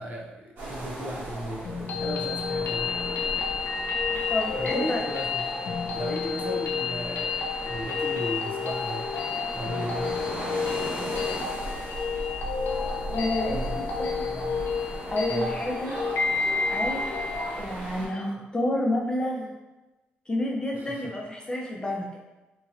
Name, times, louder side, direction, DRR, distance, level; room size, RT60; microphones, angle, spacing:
voice 1, 0.0-2.9 4.1-5.5 5.9-9.1 9.5-10.2 13.5-13.8 14.3-14.6 15.3-15.6 20.8-21.1, equal, 45° right, -1 dB, 0.5 m, -36 dB
sound 1, 0.6-18.1, right 1 dB, 75° right, 1.3 m, -37 dB
sound 2, 1.7-17.6, left 5 dB, 70° left, 0.5 m, -30 dB
voice 2, 4.1-5.0 6.1-6.2 13.1-13.6 14.0-14.4 15.1-16.0 16.7-17.1 17.6-19.5 20.3-22.2, left 1 dB, 25° left, -2 dB, 0.7 m, -29 dB
3.0 x 2.7 x 2.5 m, 1.1 s
cardioid pair, 85°, 4 cm